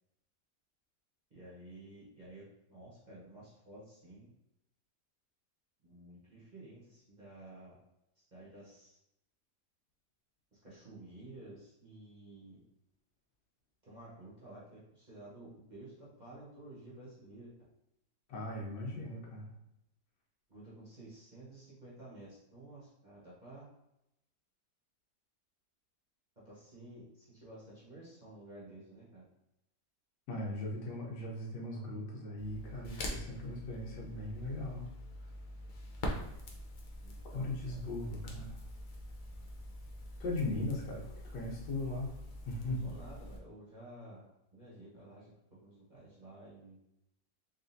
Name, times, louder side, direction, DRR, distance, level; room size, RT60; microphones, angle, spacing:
voice 1, 1.3-4.3 5.8-7.8 8.1-9.0 10.5-12.6 13.8-17.5 20.5-23.7 26.4-29.2 35.8-35.9 37.0-37.8 42.8-44.3 44.5-45.3 45.6-46.8, right 1 dB, 30° right, -8 dB, 1.0 m, -52 dB
voice 2, 18.3-19.5 30.3-34.9 37.3-38.6 40.2-42.1 42.4-42.8, left 2 dB, 85° left, -1 dB, 1.6 m, -38 dB
Crackle, 32.4-43.4, left 1 dB, 70° left, 0.4 m, -44 dB
4.1 x 3.4 x 2.7 m, 0.86 s
omnidirectional pair, 1.8 m